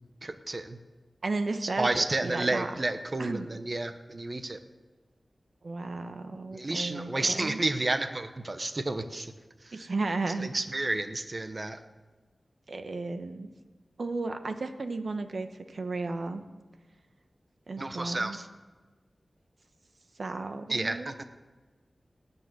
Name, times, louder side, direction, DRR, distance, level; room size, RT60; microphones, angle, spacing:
voice 1, 0.2-0.8 1.6-4.6 6.5-9.3 9.6-9.7 10.4-11.8 17.8-18.5 20.7-21.2, right 2 dB, 35° right, 8 dB, 1.0 m, -31 dB
voice 2, 1.2-2.7 3.2-3.5 5.6-7.6 9.7-10.5 12.7-13.5 14.0-16.4 17.7-18.4 20.2-21.2, right 3 dB, 65° right, 7 dB, 1.2 m, -34 dB
18.0 x 7.0 x 9.8 m, 1.3 s
wide cardioid pair, 100°, 0 cm